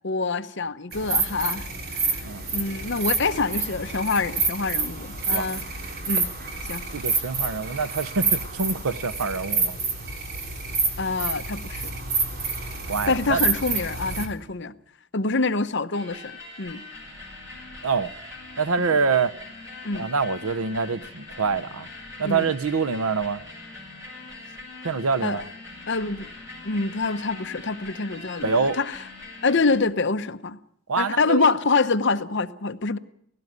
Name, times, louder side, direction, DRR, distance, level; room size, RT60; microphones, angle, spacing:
voice 1, 0.0-1.7 2.0-2.2 2.5-5.6 6.1-6.3 6.7-6.8 11.0-11.9 13.1-14.7 15.1-16.3 16.6-16.8 18.8-18.9 19.8-20.1 22.2-22.5 25.2-25.4 25.9-26.3 26.6-29.0 29.4-30.6 31.0-33.0, left 3 dB, 55° left, 0.9 m, -25 dB
sound 1, 0.9-14.3, right 4 dB, 45° right, 2.8 m, -28 dB
voice 2, 6.9-9.8 12.9-13.4 17.8-18.1 18.6-19.3 19.9-21.9 22.2-23.4 24.8-25.4 28.4-28.8 30.9-31.5, right 5 dB, 80° right, 0.8 m, -25 dB
sound 2, 15.9-29.8, left 2 dB, 15° right, 7.2 m, -42 dB
17.5 x 16.0 x 9.5 m
head